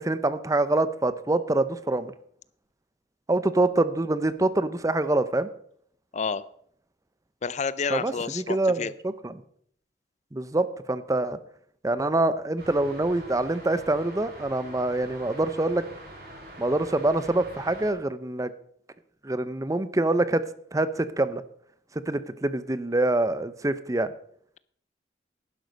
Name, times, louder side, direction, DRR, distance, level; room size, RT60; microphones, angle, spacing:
voice 1, 0.0-2.1 3.3-5.5 7.9-9.3 10.3-11.4 11.8-15.8 16.6-18.5 19.2-20.4 20.7-21.4 22.1-24.1, right 2 dB, 20° right, 14 dB, 0.6 m, -25 dB
voice 2, 7.4-8.9, left 5 dB, 40° left, 17 dB, 0.5 m, -29 dB
sound 1, 12.6-17.9, right 1 dB, 60° right, 5.1 m, -44 dB
11.5 x 10.5 x 5.2 m, 0.63 s
head